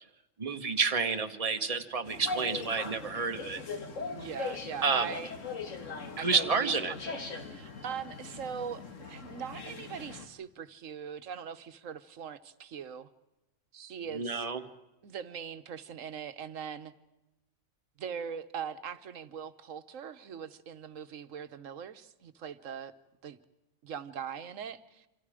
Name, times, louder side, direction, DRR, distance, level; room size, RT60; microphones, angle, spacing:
voice 1, 0.4-3.6 4.8-5.1 6.2-6.9 14.1-14.6, right 5 dB, 30° right, 7 dB, 1.3 m, -29 dB
sound 1, 2.1-10.3, left 4 dB, 75° left, 2.0 m, -40 dB
voice 2, 4.1-5.3 6.2-13.1 13.7-14.5 15.0-16.9 18.0-22.9 23.2-23.4 23.8-25.1, right 7 dB, 85° right, 11 dB, 1.4 m, -41 dB
28.5 x 25.5 x 5.0 m, 0.99 s
omnidirectional pair, 1.3 m